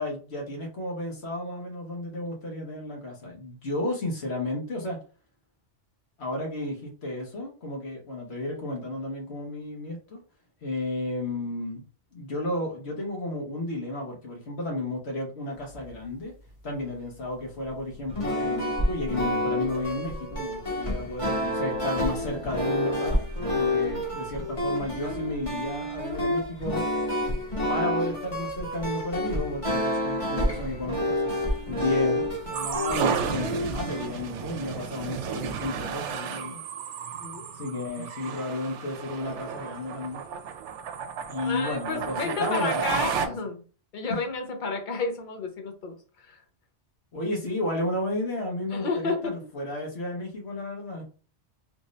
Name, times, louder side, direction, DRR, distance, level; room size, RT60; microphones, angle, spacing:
voice 1, 0.0-5.0 6.2-10.2 10.6-11.8 12.1-16.3 16.6-23.2 23.5-26.8 27.7-36.6 37.5-40.2 41.3-43.3 44.1-44.2 47.1-51.0, left 1 dB, 65° left, 1.5 m, -33 dB
sound 1, 18.0-34.1, left 1 dB, 30° left, 1.4 m, -29 dB
sound 2, 32.5-43.3, right 7 dB, 85° right, 0.9 m, -33 dB
voice 2, 41.4-43.6 43.9-46.4 48.7-49.4, left 3 dB, 50° left, 0.9 m, -31 dB
3.5 x 2.6 x 3.2 m
omnidirectional pair, 1.2 m